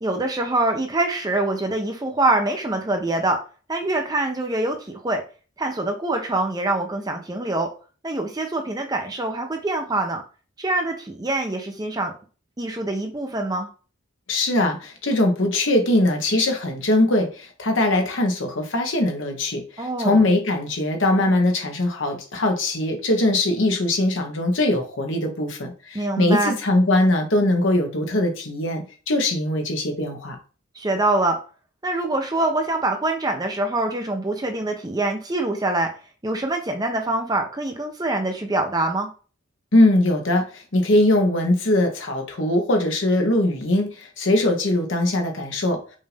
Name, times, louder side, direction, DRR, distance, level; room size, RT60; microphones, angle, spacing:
voice 1, 0.0-3.4 3.7-5.2 5.6-7.7 8.0-10.2 10.6-12.1 12.6-13.7 19.8-20.2 25.9-26.6 30.7-31.4 31.8-35.9 36.2-39.1, right 2 dB, 20° right, 4 dB, 0.6 m, -24 dB
voice 2, 14.3-30.4 39.7-45.8, left 1 dB, 70° left, 3 dB, 1.1 m, -21 dB
5.4 x 2.6 x 3.4 m, 0.36 s
head